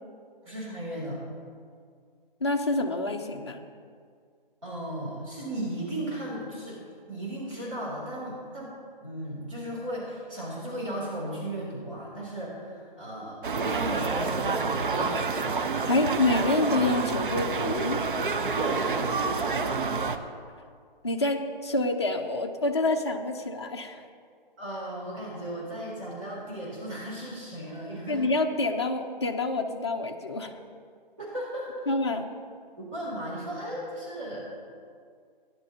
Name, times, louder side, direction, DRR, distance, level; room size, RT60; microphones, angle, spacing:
voice 1, 0.4-1.2 4.6-6.8 7.1-8.7 9.0-15.6 18.5-19.0 24.6-28.2 31.2-31.7 32.8-34.5, right 1 dB, 35° right, -6 dB, 3.0 m, -35 dB
voice 2, 2.4-3.6 15.9-18.0 21.0-24.1 28.1-30.6 31.9-32.3, left 2 dB, 30° left, 2 dB, 0.6 m, -27 dB
sound 1, 13.4-20.2, right 4 dB, 60° right, 0.8 m, -28 dB
16.5 x 10.5 x 2.8 m, 2.1 s
hypercardioid pair, 175°, 29 cm